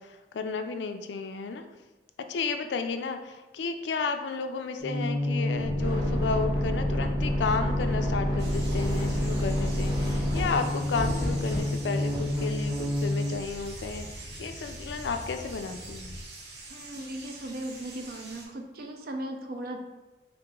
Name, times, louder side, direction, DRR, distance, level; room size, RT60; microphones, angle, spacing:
voice 1, 0.0-1.7 2.2-14.1 14.4-16.1, left 4 dB, 80° left, 7 dB, 0.4 m, -32 dB
sound 1, 4.8-13.4, left 1 dB, 25° right, 1.2 m, -28 dB
sound 2, 8.1-16.2, equal, ahead, 0.5 m, -44 dB
sound 3, 8.4-18.5, right 3 dB, 70° right, 0.9 m, -46 dB
voice 2, 16.7-19.8, right 1 dB, 55° right, 4 dB, 0.4 m, -37 dB
3.9 x 2.9 x 3.6 m, 1.1 s
head